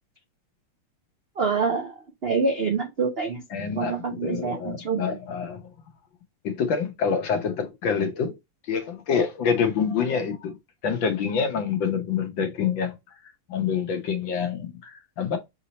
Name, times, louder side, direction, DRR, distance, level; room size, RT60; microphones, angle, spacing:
voice 1, 1.4-1.9 2.2-3.4 3.7-5.2, right 4 dB, 85° right, 0.5 m, -26 dB
voice 2, 3.5-5.7 6.4-8.4 8.7-10.6 10.8-13.0 13.5-15.4, left 6 dB, 65° left, 1.7 m, -26 dB
6.6 x 2.8 x 3.0 m
omnidirectional pair, 2.4 m